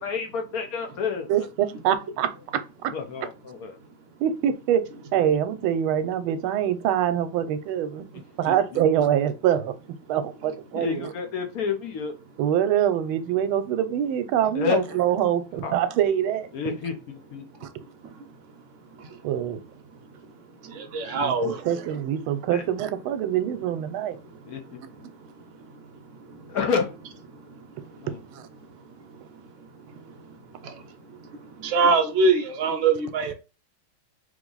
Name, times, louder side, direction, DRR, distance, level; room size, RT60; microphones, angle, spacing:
voice 1, 0.0-1.3 2.9-3.8 8.5-8.6 10.7-12.1 14.5-15.0 15.6-15.7 16.5-17.4 22.5-22.6 24.5-24.6 26.5-26.9 28.0-28.2, left 6 dB, 60° left, 1.0 m, -29 dB
voice 2, 1.3-2.9 4.2-4.9 5.1-8.0 8.4-9.7 10.1-11.1 12.4-16.5 19.2-19.6 21.2-24.2 28.3-28.4, right 10 dB, 85° right, 1.4 m, -24 dB
voice 3, 20.8-21.9 30.6-30.7 31.6-33.3, right 4 dB, 55° right, 0.8 m, -23 dB
3.6 x 3.3 x 3.8 m
omnidirectional pair, 2.2 m